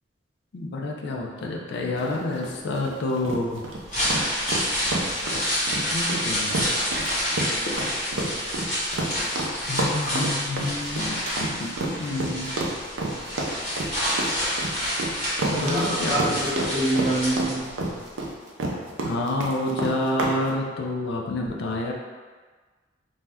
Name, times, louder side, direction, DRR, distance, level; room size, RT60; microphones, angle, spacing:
voice 1, 0.5-3.6 5.9-6.7 7.7-7.8 9.7-12.5 15.5-16.4 19.0-21.9, left 2 dB, 65° left, -1 dB, 0.4 m, -28 dB
sound 1, 2.0-20.4, right 2 dB, 80° right, 0.5 m, -29 dB
sound 2, 3.7-17.9 18.2-18.3, equal, 35° left, 1.3 m, -28 dB
voice 2, 15.5-17.7, right 1 dB, 30° right, -6 dB, 0.6 m, -26 dB
2.6 x 2.2 x 3.4 m, 1.4 s
head